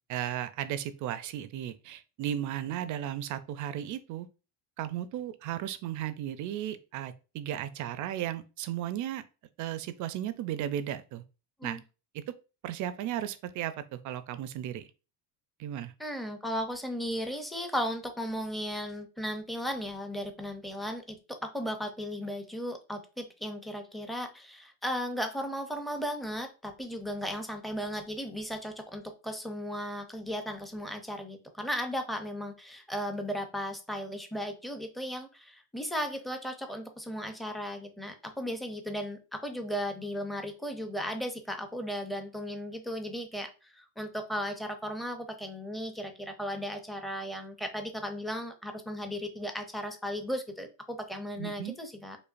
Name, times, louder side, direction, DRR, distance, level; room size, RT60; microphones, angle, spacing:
voice 1, 0.1-4.3 4.8-9.2 9.6-11.2 11.6-11.8 12.1-12.3 12.6-14.9 15.6-15.9 51.4-51.8, right 11 dB, 50° right, 0.4 m, -35 dB
voice 2, 16.0-52.2, equal, ahead, 0.5 m, -36 dB
5.1 x 2.2 x 2.5 m
supercardioid pair, 110°, 40 cm